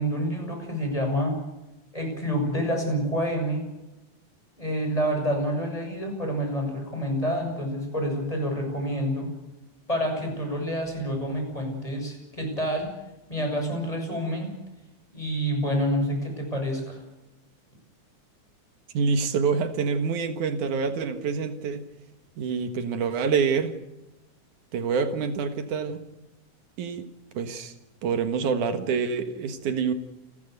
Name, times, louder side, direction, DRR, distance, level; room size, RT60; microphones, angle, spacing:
voice 1, 0.0-1.4 1.9-3.6 4.6-9.3 9.9-12.9 13.3-14.5 15.1-17.0, equal, 10° left, 2 dB, 7.2 m, -28 dB
voice 2, 18.9-21.8 22.4-23.7 24.7-26.0 26.8-27.1 27.3-27.7 28.0-29.9, right 5 dB, 80° right, 8 dB, 3.0 m, -26 dB
30.0 x 13.0 x 8.1 m, 0.94 s
omnidirectional pair, 3.5 m